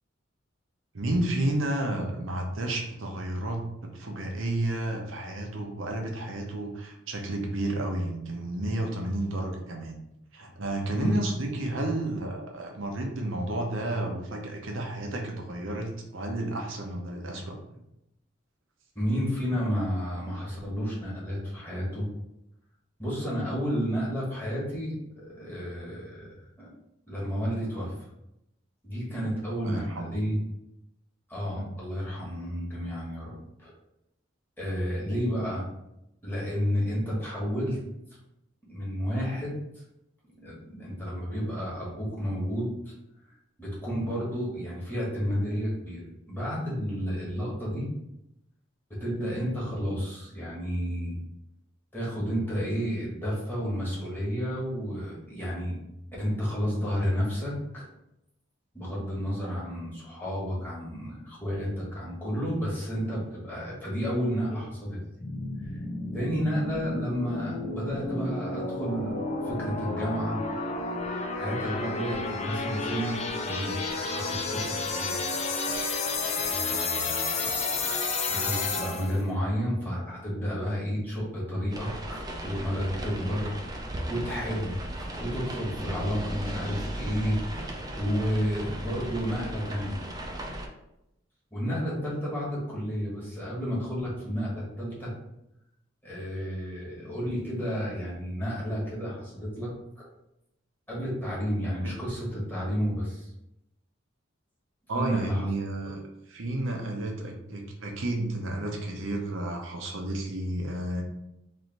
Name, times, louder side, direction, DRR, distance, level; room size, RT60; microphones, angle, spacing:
voice 1, 0.9-10.0 10.3-17.8 29.6-30.1 31.6-31.7 101.8-102.0 104.9-106.0 106.3-111.0, right 1 dB, 85° right, 1 dB, 0.8 m, -31 dB
voice 2, 18.9-22.0 23.0-25.0 25.2-26.7 27.1-27.9 28.8-30.4 31.3-33.3 33.6-33.7 34.6-35.6 36.2-37.8 38.7-39.6 40.4-42.9 43.6-46.0 46.3-47.9 49.0-51.2 51.9-55.7 56.2-57.8 58.7-65.0 65.7-65.8 66.1-69.1 69.4-70.4 71.3-73.8 74.1-75.1 76.4-77.4 78.3-89.9 91.5-95.1 96.0-100.1 100.9-103.3 104.9-105.5 105.8-105.9, equal, 10° left, -7 dB, 1.4 m, -31 dB
sound 1, 65.2-79.2, left 3 dB, 35° left, 0.5 m, -31 dB
sound 2, 81.7-90.7, right 1 dB, 20° right, 0.4 m, -36 dB
3.2 x 2.7 x 4.0 m, 0.86 s
head